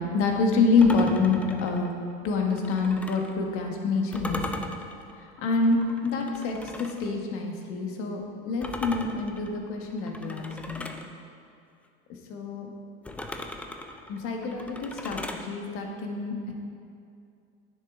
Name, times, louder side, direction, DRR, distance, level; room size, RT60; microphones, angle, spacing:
voice 1, 0.1-1.9 2.2-4.4 5.2-10.9 12.3-12.7 14.1-16.5, left 4 dB, 45° left, 2 dB, 1.3 m, -27 dB
sound 1, 0.8-3.4 4.1-7.1 8.6-11.1 13.0-15.5, left 1 dB, 5° left, 0.3 m, -38 dB
9.7 x 6.7 x 3.6 m, 2.5 s
supercardioid pair, 130°, 29 cm